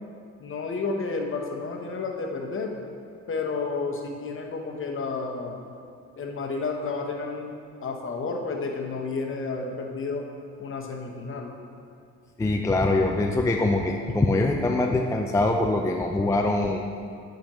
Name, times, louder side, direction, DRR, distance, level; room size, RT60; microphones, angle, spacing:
voice 1, 0.4-2.7 3.3-5.6 6.2-10.2 10.6-11.5, left 4 dB, 45° left, 2 dB, 0.9 m, -31 dB
voice 2, 12.4-16.8, left 2 dB, 10° left, 2 dB, 0.3 m, -23 dB
9.9 x 5.1 x 3.0 m, 2.4 s
cardioid pair, 90°, 30 cm